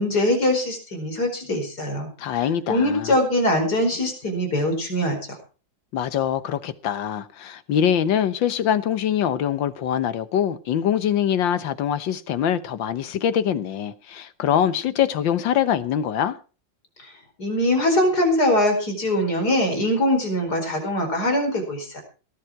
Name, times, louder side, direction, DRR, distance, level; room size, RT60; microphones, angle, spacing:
voice 1, 0.0-2.1 2.7-5.4 17.4-22.0, left 1 dB, 55° left, 5.1 m, -22 dB
voice 2, 2.2-3.1 5.9-16.4, left 9 dB, 85° left, 1.8 m, -23 dB
18.0 x 10.5 x 4.6 m
omnidirectional pair, 2.0 m